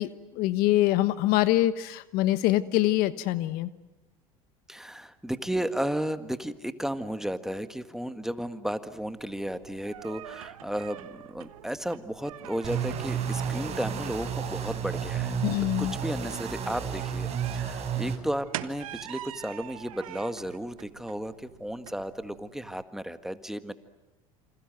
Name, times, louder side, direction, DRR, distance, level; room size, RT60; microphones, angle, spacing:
voice 1, 0.0-3.7 15.4-15.9, left 15 dB, 60° left, 14 dB, 1.2 m, -24 dB
voice 2, 4.7-15.4 15.8-23.7, equal, 5° right, 10 dB, 1.7 m, -34 dB
sound 1, 9.0-22.8, right 13 dB, 80° right, 1.3 m, -44 dB
sound 2, 12.6-18.2, right 7 dB, 40° right, 5.1 m, -32 dB
28.0 x 26.5 x 7.8 m, 1.0 s
hypercardioid pair, 80°, 18 cm